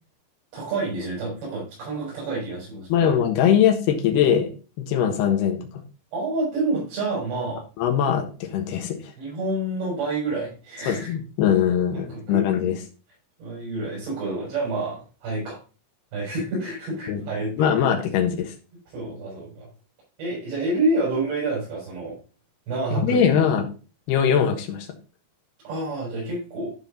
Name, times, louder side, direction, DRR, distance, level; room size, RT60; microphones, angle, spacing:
voice 1, 0.5-3.1 6.1-7.6 9.2-11.1 11.9-12.4 13.4-15.6 16.1-17.7 18.9-19.7 20.2-22.2 22.7-23.4 25.6-26.7, right 2 dB, 85° right, -7 dB, 7.7 m, -28 dB
voice 2, 2.9-4.5 4.9-5.8 7.8-9.1 10.9-12.8 17.1-17.2 17.6-18.5 22.9-23.7 24.1-24.9, left 8 dB, 75° left, 3 dB, 3.4 m, -21 dB
13.5 x 5.0 x 3.9 m, 0.34 s
omnidirectional pair, 4.8 m